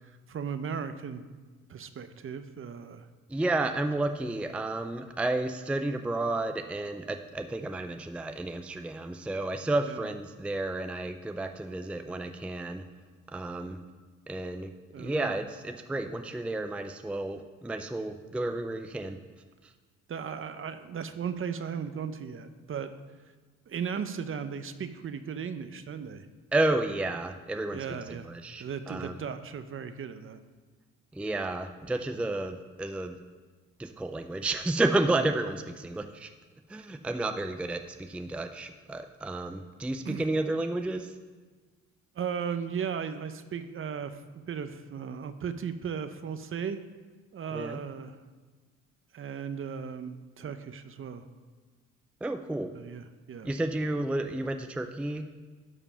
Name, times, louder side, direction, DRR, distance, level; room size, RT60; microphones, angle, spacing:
voice 1, 0.3-1.2 1.7-3.1 9.8-10.1 14.9-15.3 20.1-22.9 23.7-26.3 27.7-28.3 28.6-30.4 40.0-40.3 42.2-46.8 47.3-48.2 49.1-51.2 52.7-53.5, right 7 dB, 45° right, 10 dB, 0.7 m, -36 dB
voice 2, 3.3-12.8 13.3-13.8 14.3-14.7 15.0-19.2 26.5-29.2 31.1-33.2 33.8-36.3 36.7-41.1 47.5-47.8 52.2-52.7 53.4-55.3, right 2 dB, 5° right, 7 dB, 0.4 m, -31 dB
11.0 x 5.0 x 5.6 m, 1.4 s
cardioid pair, 90°, 30 cm